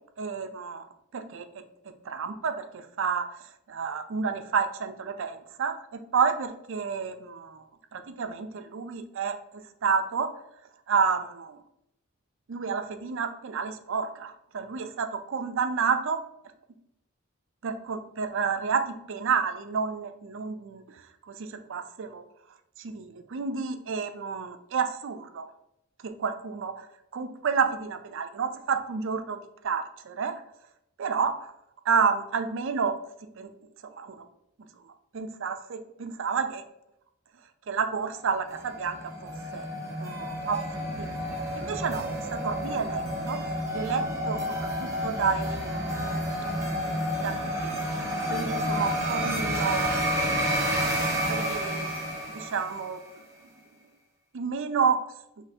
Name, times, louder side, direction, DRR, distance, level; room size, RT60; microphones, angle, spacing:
voice 1, 0.2-0.8 1.1-1.5 2.1-3.3 3.7-5.8 6.1-7.6 7.9-9.4 9.8-10.3 10.9-11.6 12.5-16.2 17.6-18.8 19.1-20.8 21.3-22.2 22.8-25.4 26.0-26.8 27.1-29.4 29.6-30.4 31.0-31.5 31.9-32.9 33.4-33.5 33.8-34.2 35.1-36.6 37.7-39.7 40.0-40.6 41.0-41.2 41.6-42.0 42.3-46.2 47.2-47.3 47.6-47.8 48.3-50.1 51.3-51.9 52.3-53.0 54.3-55.0, right 6 dB, 65° right, 8 dB, 0.4 m, -30 dB
sound 1, 38.4-53.0, equal, 15° right, 1.1 m, -30 dB
5.3 x 3.2 x 2.7 m, 0.80 s
head